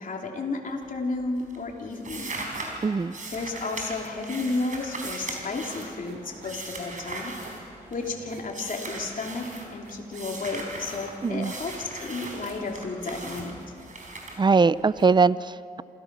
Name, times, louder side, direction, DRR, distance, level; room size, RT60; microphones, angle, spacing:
voice 1, 0.0-2.4 3.3-7.6 7.9-13.5, left 3 dB, 55° left, 1 dB, 3.0 m, -32 dB
sound 1, 0.7-1.1 1.4-8.1 8.5-9.7 10.1-15.0, right 2 dB, 55° right, 4.7 m, -39 dB
voice 2, 2.8-3.1 11.2-11.5 14.4-15.8, right 4 dB, 30° right, 18 dB, 0.5 m, -21 dB
sound 2, 4.2-4.7 4.9-14.2, right 4 dB, 90° right, 2.7 m, -53 dB
sound 3, 6.2-14.4, equal, 10° right, 6.8 m, -55 dB
27.5 x 16.0 x 6.2 m, 2.5 s
cardioid pair, 60°, 16 cm